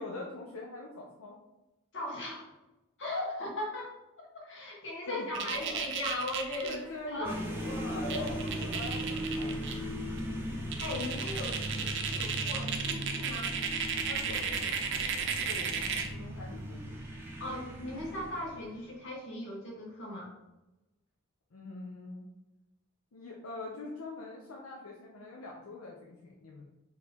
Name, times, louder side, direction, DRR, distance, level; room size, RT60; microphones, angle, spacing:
voice 1, 0.0-1.4 5.1-5.9 6.6-9.7 14.0-17.0 21.5-22.3 23.1-26.6, left 2 dB, 80° left, -2 dB, 0.6 m, -44 dB
voice 2, 1.9-2.5 3.0-7.4 8.0-8.6 10.8-13.5 17.4-20.3, left 1 dB, 60° left, -2 dB, 1.3 m, -38 dB
sound 1, 5.3-6.8 7.8-9.7 10.2-10.3 10.7-16.1, right 7 dB, 55° right, 0.5 m, -34 dB
sound 2, 7.2-19.0, equal, 10° right, 0.6 m, -38 dB
4.5 x 2.8 x 3.4 m, 1.0 s
head